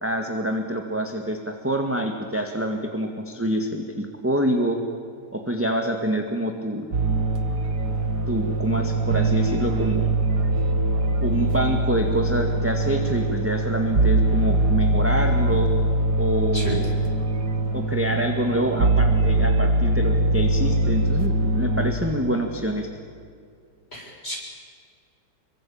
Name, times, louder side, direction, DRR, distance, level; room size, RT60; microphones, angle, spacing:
voice 1, 0.0-4.8 5.3-7.0 8.3-10.1 11.2-15.7 16.2-16.8 17.7-22.9, right 1 dB, 5° right, 3 dB, 1.9 m, -26 dB
sound 1, 6.9-21.9, right 2 dB, 60° right, 2.4 m, -22 dB
voice 2, 23.9-24.4, left 1 dB, 35° left, -2 dB, 7.9 m, -32 dB
26.5 x 24.5 x 8.8 m, 2.3 s
omnidirectional pair, 1.9 m